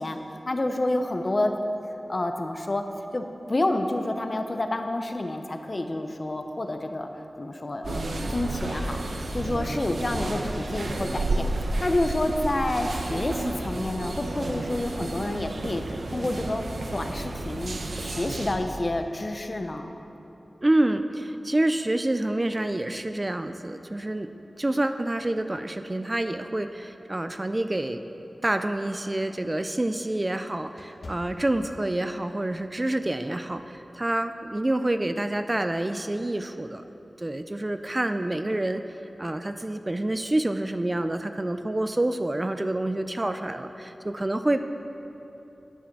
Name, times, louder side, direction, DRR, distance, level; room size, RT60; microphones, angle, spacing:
voice 1, 0.0-1.5 2.1-2.8 3.1-7.1 7.4-11.5 11.8-15.8 16.1-16.6 16.9-17.8 18.0-19.9, left 1 dB, 40° left, 6 dB, 0.7 m, -29 dB
sound 1, 7.8-18.6, right 2 dB, 80° right, 0.8 m, -31 dB
voice 2, 20.6-24.3 24.6-28.0 28.4-36.9 37.2-38.8 39.2-44.6, right 1 dB, 25° right, 9 dB, 0.4 m, -27 dB
sound 2, 30.6-32.2 32.7-32.9 33.5-33.8, left 2 dB, 65° left, 1.0 m, -47 dB
10.0 x 7.5 x 6.0 m, 3.0 s
wide cardioid pair, 80°, 0 cm